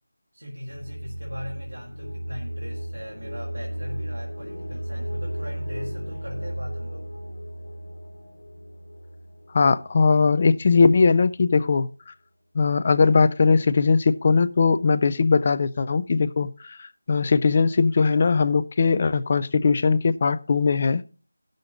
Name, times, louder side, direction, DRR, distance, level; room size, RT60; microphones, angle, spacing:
voice 1, 0.3-7.1, equal, 90° right, 2.0 m, -39 dB
sound 1, 0.7-10.5, equal, 75° left, 1.4 m, -35 dB
voice 2, 9.5-12.1 12.5-21.0, left 4 dB, 30° left, 0.4 m, -20 dB
16.0 x 6.5 x 3.8 m
figure-of-eight pair, 170°, 0 cm